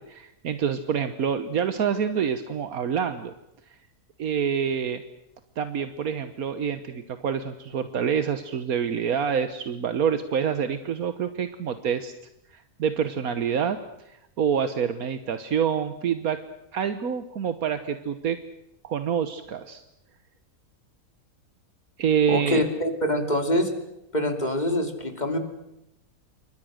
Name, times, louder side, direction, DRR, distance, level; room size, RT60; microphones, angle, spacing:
voice 1, 0.0-3.3 4.2-5.0 5.6-12.1 12.5-13.8 14.1-16.4 16.7-18.4 18.8-19.8 22.0-22.6, right 7 dB, 80° right, 10 dB, 1.6 m, -27 dB
voice 2, 22.3-23.7 24.1-25.4, left 1 dB, 30° left, 5 dB, 3.2 m, -25 dB
28.0 x 24.0 x 6.5 m, 0.87 s
omnidirectional pair, 1.5 m